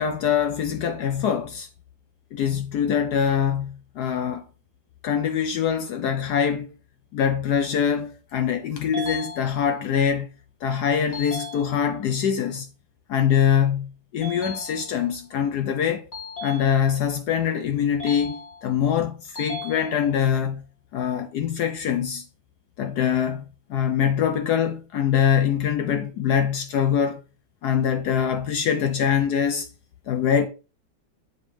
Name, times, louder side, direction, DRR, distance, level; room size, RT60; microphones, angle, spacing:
voice 1, 0.0-1.7 2.3-4.4 5.0-6.7 7.1-10.3 10.6-12.7 13.1-16.1 16.4-20.6 20.9-22.2 22.8-27.2 27.6-29.7 30.1-30.5, left 8 dB, 70° left, 1.0 m, -23 dB
sound 1, 8.9-10.0 11.1-12.1 14.2-15.2 16.1-17.2 18.0-18.9 19.4-20.4, left 4 dB, 45° left, 2.4 m, -37 dB
7.2 x 4.4 x 3.2 m
omnidirectional pair, 2.1 m